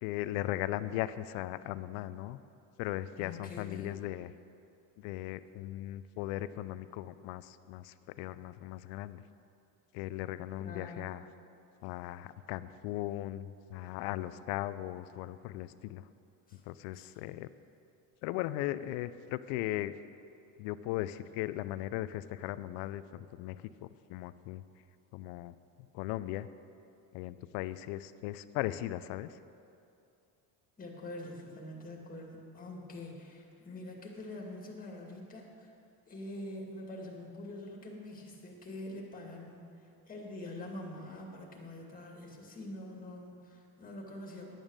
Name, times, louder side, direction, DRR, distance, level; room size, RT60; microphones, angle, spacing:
voice 1, 0.0-2.4 2.8-4.3 5.0-9.2 9.9-11.2 11.8-16.1 16.7-17.5 18.2-20.0 20.6-24.6 25.1-25.6 25.9-26.5 27.1-29.4, left 14 dB, 80° left, 15 dB, 0.6 m, -38 dB
voice 2, 3.2-3.9 10.6-11.2 16.5-16.6 16.9-17.1 30.8-35.7 36.1-39.7 40.1-44.5, left 1 dB, 20° left, 0 dB, 2.3 m, -45 dB
11.0 x 8.9 x 6.5 m, 2.6 s
cardioid pair, 115°, 41 cm